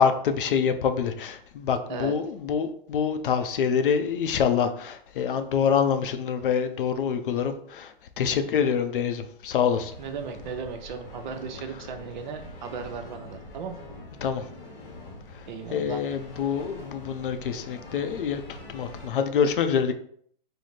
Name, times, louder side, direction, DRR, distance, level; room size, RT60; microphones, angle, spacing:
voice 1, 0.0-9.9 14.2-14.4 15.3-15.4 15.7-18.4 18.7-20.0, left 7 dB, 65° left, 0.5 m, -26 dB
sound 1, 9.7-19.1, left 1 dB, 25° left, 0.8 m, -44 dB
voice 2, 10.0-13.8 15.5-16.0, right 6 dB, 50° right, 0.6 m, -36 dB
3.2 x 2.0 x 4.0 m
hypercardioid pair, 140°, 29 cm